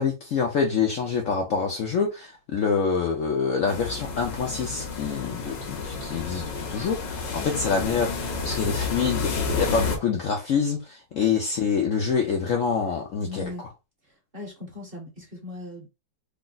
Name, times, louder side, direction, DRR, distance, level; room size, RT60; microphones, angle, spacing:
voice 1, 0.0-13.5, left 6 dB, 65° left, 0.8 m, -26 dB
sound 1, 3.7-10.0, left 4 dB, 80° left, 1.6 m, -30 dB
voice 2, 13.2-13.6 14.0-15.9, left 3 dB, 40° right, 1.0 m, -39 dB
3.4 x 2.0 x 3.8 m
omnidirectional pair, 1.9 m